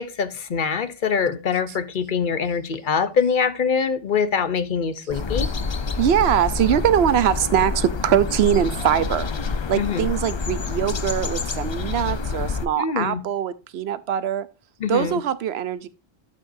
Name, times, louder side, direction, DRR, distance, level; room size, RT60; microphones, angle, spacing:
voice 1, 0.0-5.5 9.7-10.1 12.8-13.2 14.8-15.2, left 6 dB, 55° left, 0.9 m, -24 dB
sound 1, 5.1-12.7, left 4 dB, 35° left, 0.5 m, -27 dB
voice 2, 6.0-9.3 9.7-14.5 14.9-15.9, right 9 dB, 85° right, 0.9 m, -22 dB
12.0 x 5.4 x 2.6 m
omnidirectional pair, 1.0 m